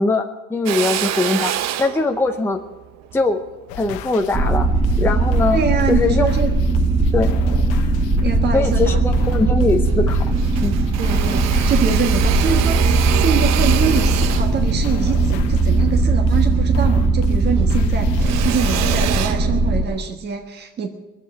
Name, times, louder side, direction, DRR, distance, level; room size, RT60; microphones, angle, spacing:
voice 1, 0.0-1.5 1.8-2.6 3.1-3.4 3.8-4.7 5.0-5.6 5.9-6.3 7.1-7.3 8.5-10.2 10.6-10.8, left 3 dB, 10° left, 4 dB, 0.7 m, -21 dB
Drill, 0.7-5.2 5.8-6.9 7.4-8.3 8.7-8.8 9.0-10.0 10.3-17.0 17.3-20.1, right 12 dB, 60° right, 0.8 m, -28 dB
sound 1, 3.7-19.2, left 8 dB, 75° left, 1.0 m, -33 dB
sound 2, 4.3-19.8, right 3 dB, 15° right, 1.2 m, -18 dB
voice 2, 5.5-6.5 8.2-9.0 11.0-20.9, right 6 dB, 35° right, 3 dB, 1.4 m, -25 dB
21.5 x 7.6 x 8.2 m, 1.1 s
cardioid pair, 125°, 30 cm